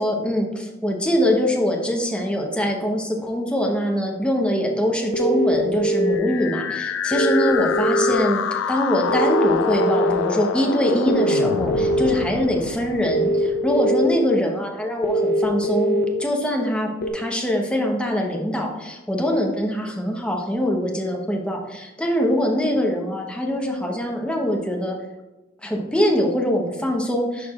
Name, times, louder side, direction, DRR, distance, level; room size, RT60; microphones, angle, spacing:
voice 1, 0.0-25.0 25.6-27.5, equal, 5° left, 0 dB, 0.9 m, -23 dB
sound 1, 5.1-6.1 7.1-8.1 9.1-10.1 11.1-12.1 13.1-14.1 15.0-16.0 17.0-17.1, right 1 dB, 55° left, 0.8 m, -21 dB
sound 2, 6.0-13.9, left 6 dB, 75° left, 0.4 m, -28 dB
10.5 x 4.6 x 2.4 m, 1.1 s
head